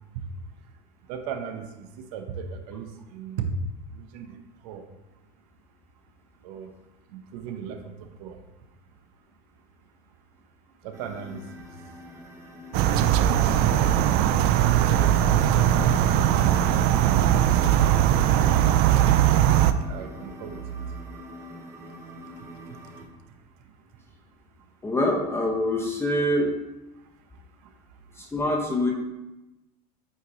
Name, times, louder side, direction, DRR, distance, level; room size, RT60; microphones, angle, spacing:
voice 1, 1.1-3.5 3.9-4.4 4.6-4.8 6.4-6.7 7.1-8.4 10.8-11.7 18.8-19.3 19.8-20.8 22.7-22.8, right 8 dB, 75° right, 6 dB, 0.8 m, -38 dB
sound 1, 10.9-23.1, equal, 15° right, 1.0 m, -44 dB
sound 2, 12.7-19.7, right 11 dB, 55° right, 0.4 m, -20 dB
voice 2, 24.8-26.5 28.2-28.9, left 1 dB, 10° left, -1 dB, 0.9 m, -25 dB
8.5 x 3.0 x 3.9 m, 1.0 s
supercardioid pair, 125°, 20 cm